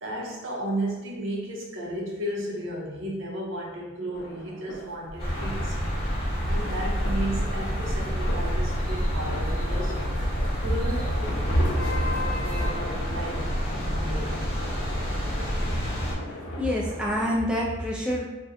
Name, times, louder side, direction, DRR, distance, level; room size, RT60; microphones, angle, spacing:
voice 1, 0.0-5.8 6.5-10.0 10.6-14.3, right 1 dB, 70° right, -2 dB, 0.7 m, -34 dB
sound 1, 4.1-17.4, left 1 dB, 85° left, 0.5 m, -39 dB
sound 2, 5.2-16.1, equal, 30° left, 0.8 m, -29 dB
sound 3, 6.3-12.7, left 1 dB, 65° left, 0.9 m, -34 dB
voice 2, 16.6-18.2, equal, 5° right, -4 dB, 0.4 m, -26 dB
2.6 x 2.2 x 3.6 m, 1.1 s
head